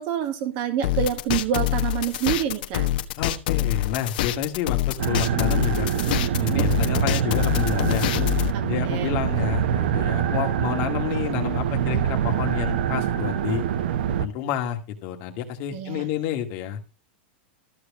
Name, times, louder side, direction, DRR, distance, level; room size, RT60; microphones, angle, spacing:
voice 1, 0.0-2.9 6.5-6.7 8.5-9.2 11.9-12.0 15.7-16.1, right 10 dB, 35° right, 7 dB, 2.2 m, -27 dB
sound 1, 0.8-8.5, left 14 dB, 50° left, 1.3 m, -25 dB
voice 2, 3.2-8.1 8.6-13.6 14.2-16.8, left 10 dB, 35° left, 4 dB, 2.3 m, -29 dB
sound 2, 5.0-14.3, right 9 dB, 60° right, 1.0 m, -25 dB
14.0 x 4.8 x 7.4 m, 0.30 s
supercardioid pair, 175°, 6 cm